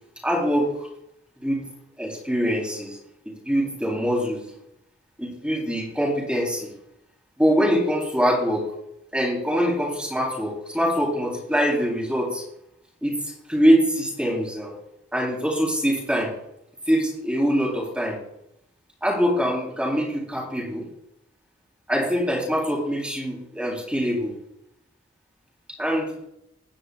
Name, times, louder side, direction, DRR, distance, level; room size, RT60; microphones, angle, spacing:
voice 1, 0.2-0.7 1.4-1.6 2.0-3.0 3.3-4.5 5.2-6.7 7.4-8.6 9.1-12.4 13.0-14.7 15.1-16.3 16.9-18.2 19.0-20.9 21.9-24.3 25.8-26.2, equal, 5° right, -3 dB, 3.9 m, -23 dB
21.0 x 9.9 x 2.5 m, 0.79 s
head